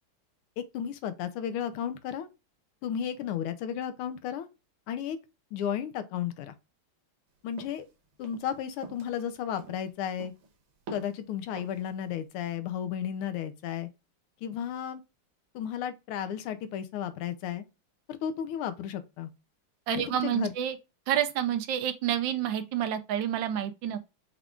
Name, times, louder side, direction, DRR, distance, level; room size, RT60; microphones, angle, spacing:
voice 1, 0.6-2.3 2.8-4.5 4.9-5.2 5.5-6.5 7.4-7.8 8.2-10.3 10.9-13.9 14.4-15.0 15.5-17.6 18.2-19.3 19.9-20.5, left 9 dB, 90° left, 1.6 m, -33 dB
sound 1, 7.6-7.8 8.2-8.5 8.8-9.2 9.6-9.9 10.2-10.5 10.9-11.2 11.6-11.9, right 4 dB, 85° right, 1.9 m, -45 dB
voice 2, 19.9-20.8 21.1-24.0, right 10 dB, 70° right, 1.2 m, -29 dB
5.6 x 2.4 x 3.5 m
omnidirectional pair, 2.4 m